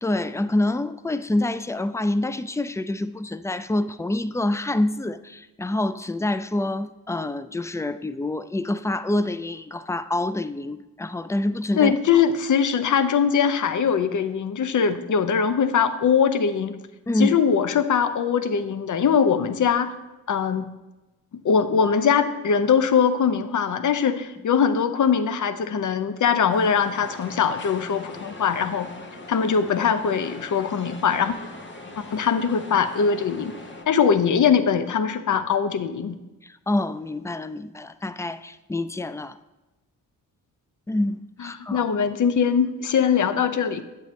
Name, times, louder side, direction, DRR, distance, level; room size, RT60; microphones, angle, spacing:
voice 1, 0.0-11.9 17.1-17.4 36.4-39.4 40.9-41.9, left 1 dB, 10° left, 0.3 m, -26 dB
voice 2, 11.8-16.8 17.2-19.9 20.3-20.6 21.4-28.9 29.3-31.4 32.0-33.6 33.9-36.2 41.7-43.8, left 7 dB, 50° left, 0.7 m, -21 dB
sound 1, 26.5-33.8, left 2 dB, 30° left, 1.2 m, -41 dB
8.7 x 7.0 x 3.1 m
supercardioid pair, 50°, 40 cm